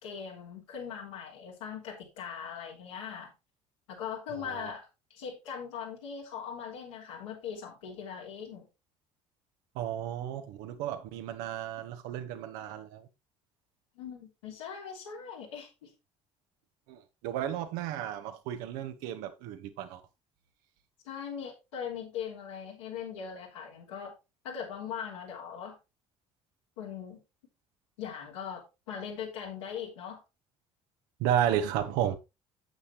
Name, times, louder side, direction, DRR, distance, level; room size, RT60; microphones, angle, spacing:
voice 1, 0.0-3.3 3.9-8.6 13.9-15.9 21.0-24.1 24.4-25.8 26.8-27.2 28.0-30.2, left 7 dB, 75° left, 3.3 m, -40 dB
voice 2, 4.3-4.7 9.7-13.1 16.9-20.0 31.2-32.2, right 10 dB, 65° right, 1.3 m, -33 dB
8.8 x 8.3 x 3.3 m
figure-of-eight pair, 55°, 16 cm